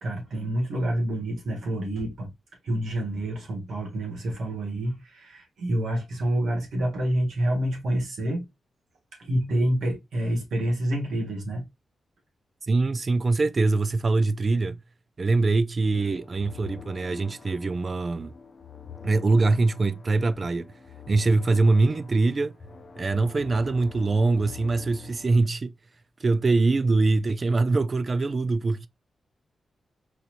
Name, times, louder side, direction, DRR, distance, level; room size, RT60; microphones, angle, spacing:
voice 1, 0.0-2.3 2.6-8.5 9.2-11.6, right 1 dB, 80° right, 1.5 m, -28 dB
voice 2, 12.6-14.8 15.2-18.3 19.0-20.7 21.1-22.6 23.0-25.7 26.2-28.9, right 3 dB, 35° right, 0.3 m, -23 dB
sound 1, 15.8-25.4, left 7 dB, 40° left, 0.6 m, -46 dB
4.1 x 2.9 x 2.5 m
wide cardioid pair, 130°, 0 cm